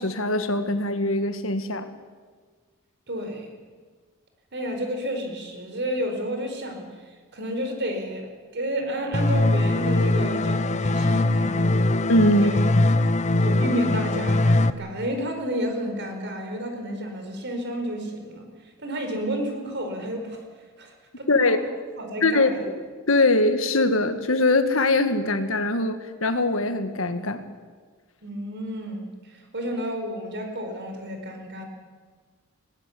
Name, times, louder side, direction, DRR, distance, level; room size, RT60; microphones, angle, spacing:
voice 1, 0.0-1.9 12.1-12.8 21.3-21.6 22.2-22.7 23.1-27.4, left 2 dB, 70° left, 9 dB, 1.7 m, -22 dB
voice 2, 3.1-3.5 4.5-6.9 7.3-11.9 12.3-12.5 13.0-18.5 18.8-20.4 20.8-21.6 22.0-22.6 28.2-29.1 29.5-31.7, equal, 55° right, 5 dB, 4.5 m, -31 dB
sound 1, 9.1-14.7, left 2 dB, 35° left, 0.8 m, -21 dB
21.0 x 18.5 x 8.5 m, 1.5 s
head